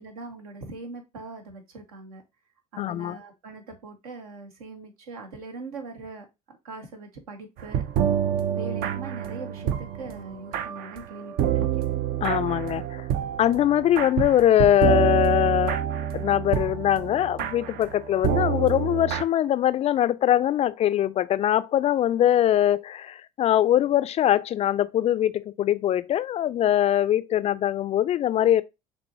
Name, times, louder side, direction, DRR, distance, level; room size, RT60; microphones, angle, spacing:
voice 1, 0.0-2.2 2.7-6.3 6.6-7.9 8.5-11.7, right 3 dB, 75° right, 1.1 m, -41 dB
voice 2, 2.8-3.2 12.2-13.0 13.4-15.8 16.1-28.6, left 11 dB, 35° left, 0.3 m, -22 dB
sound 1, 7.6-19.2, right 9 dB, 55° right, 0.5 m, -27 dB
6.1 x 3.0 x 2.7 m
figure-of-eight pair, 65°, 19 cm